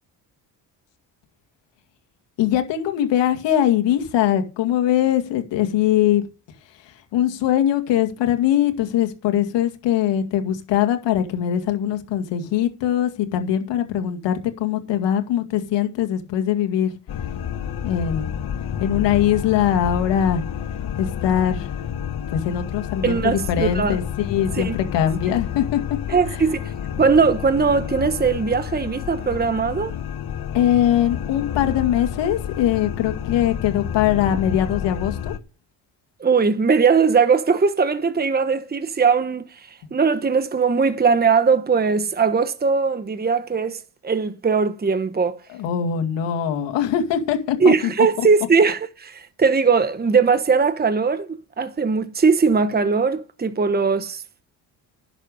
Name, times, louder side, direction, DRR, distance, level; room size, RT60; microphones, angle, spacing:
voice 1, 2.4-6.2 7.1-16.9 17.8-18.3 18.8-20.4 21.0-21.7 22.3-25.8 30.5-35.3 45.6-47.7, left 10 dB, 80° left, 2.2 m, -21 dB
sound 1, 17.1-35.4, left 9 dB, 60° left, 1.2 m, -30 dB
voice 2, 23.0-24.0 24.5-24.8 26.1-26.7 27.0-30.0 36.2-45.4 47.6-54.4, right 5 dB, 20° right, 1.2 m, -20 dB
11.0 x 7.1 x 6.7 m
supercardioid pair, 75°, 43 cm